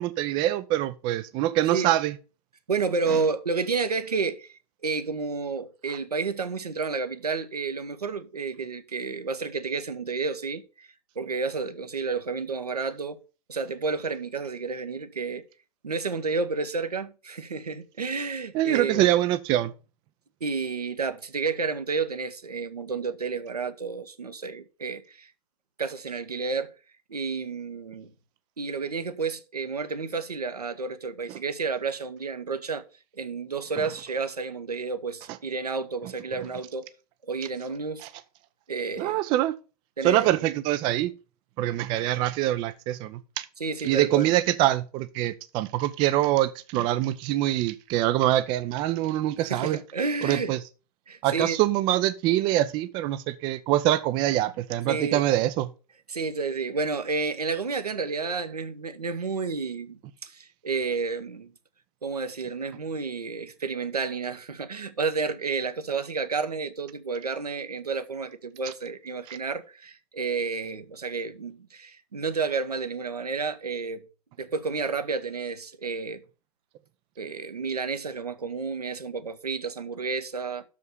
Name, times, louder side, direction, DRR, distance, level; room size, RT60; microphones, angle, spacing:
voice 1, 0.0-2.2 18.5-19.7 38.0-38.1 39.0-39.5 40.0-41.1 41.6-43.5 43.8-49.8 50.2-50.6 51.2-55.7 69.3-69.4, right 14 dB, 25° right, 0.4 m, -24 dB
voice 2, 2.7-10.9 11.2-13.2 13.5-15.4 15.8-19.1 20.4-25.3 25.8-26.7 27.1-28.1 28.6-32.8 33.2-36.9 37.2-38.1 38.7-39.2 40.0-40.3 43.6-44.3 49.5-50.5 51.1-51.6 54.9-55.2 56.1-61.5 62.0-74.0 74.4-76.2 77.2-80.6, right 4 dB, 75° right, 1.0 m, -31 dB
6.6 x 5.0 x 6.6 m
figure-of-eight pair, 105°, 20 cm